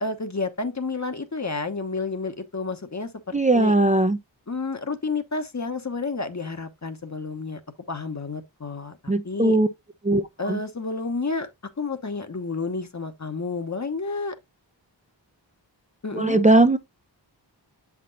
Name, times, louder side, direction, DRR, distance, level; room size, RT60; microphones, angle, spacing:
voice 1, 0.0-3.7 4.5-7.6 7.9-9.6 10.4-11.5 11.8-14.3 16.0-16.4, left 3 dB, 40° left, 1.1 m, -30 dB
voice 2, 3.3-4.2 9.1-9.7 10.0-10.6 16.1-16.8, right 2 dB, 15° right, 0.6 m, -19 dB
7.2 x 6.0 x 2.6 m
cardioid pair, 40°, 44 cm